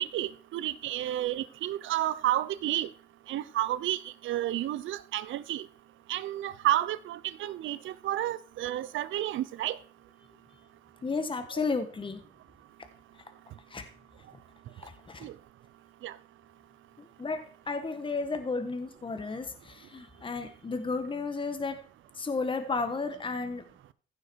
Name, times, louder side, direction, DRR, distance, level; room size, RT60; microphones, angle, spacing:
voice 1, 0.0-2.9 3.3-5.7 6.1-9.8 15.2-15.3 16.0-16.1, right 13 dB, 75° right, 0.7 m, -31 dB
voice 2, 11.0-12.2 13.7-13.8 14.8-15.3 17.0-21.8 22.1-23.7, left 4 dB, 25° left, 1.4 m, -33 dB
15.0 x 6.3 x 4.6 m
cardioid pair, 90°, 20 cm